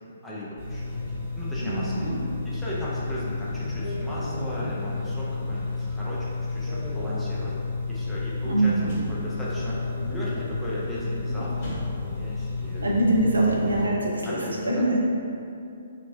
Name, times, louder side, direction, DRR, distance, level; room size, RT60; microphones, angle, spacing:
voice 1, 0.2-2.1 2.4-6.3 6.5-7.5 7.9-12.9 13.6-13.9 14.2-14.9, equal, 5° left, -8 dB, 0.6 m, -37 dB
sound 1, 0.6-13.8, left 3 dB, 40° left, 1.4 m, -31 dB
voice 2, 1.6-2.2 8.4-9.0 12.8-14.4 14.6-15.0, right 2 dB, 80° right, -3 dB, 0.6 m, -24 dB
4.1 x 2.1 x 2.6 m, 2.6 s
figure-of-eight pair, 130°, 0 cm